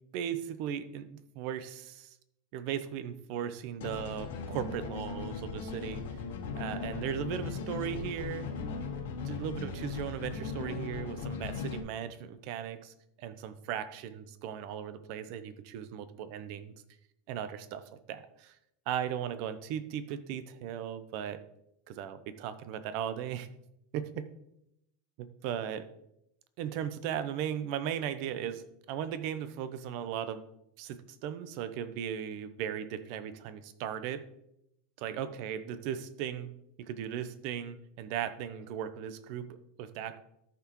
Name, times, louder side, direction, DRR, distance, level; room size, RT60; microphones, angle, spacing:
voice 1, 0.1-2.2 2.5-6.1 6.6-8.5 9.2-16.7 17.3-18.5 18.9-21.4 21.9-23.5 23.9-24.3 25.2-25.9 26.6-30.5 30.8-34.3 35.0-36.5 36.8-40.2, right 9 dB, 50° right, 12 dB, 0.7 m, -37 dB
sound 1, 3.8-11.8, left 5 dB, 85° left, 1.5 m, -38 dB
13.5 x 5.9 x 3.0 m, 0.80 s
supercardioid pair, 165°, 0 cm